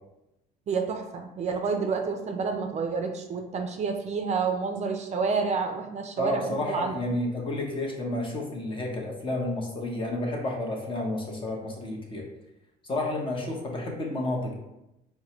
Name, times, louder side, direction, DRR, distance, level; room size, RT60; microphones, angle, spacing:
voice 1, 0.7-6.9, right 5 dB, 40° right, 4 dB, 0.4 m, -29 dB
voice 2, 6.2-12.2 12.8-14.5, left 1 dB, 30° left, -1 dB, 0.9 m, -31 dB
4.5 x 2.2 x 2.9 m, 0.90 s
cardioid pair, 110°, 17 cm